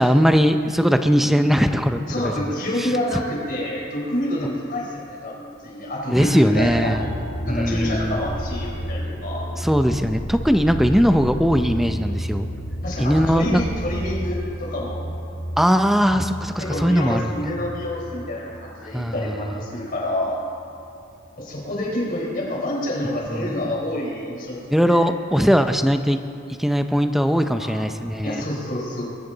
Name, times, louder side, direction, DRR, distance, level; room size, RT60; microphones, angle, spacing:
voice 1, 0.0-2.0 2.8-2.9 6.1-7.0 7.5-8.2 9.6-12.5 13.0-13.6 15.6-17.3 18.9-19.1 23.4-23.7 24.7-26.2 26.6-28.4, equal, ahead, 7 dB, 0.5 m, -19 dB
voice 2, 2.0-7.2 7.4-9.5 12.8-15.0 16.6-20.4 21.4-25.1 27.5-27.8 28.2-29.0, left 1 dB, 45° left, -3 dB, 4.3 m, -28 dB
sound 1, 6.6-19.6 19.9-20.5, equal, 65° left, 2.2 m, -31 dB
21.5 x 13.5 x 3.9 m, 2.6 s
head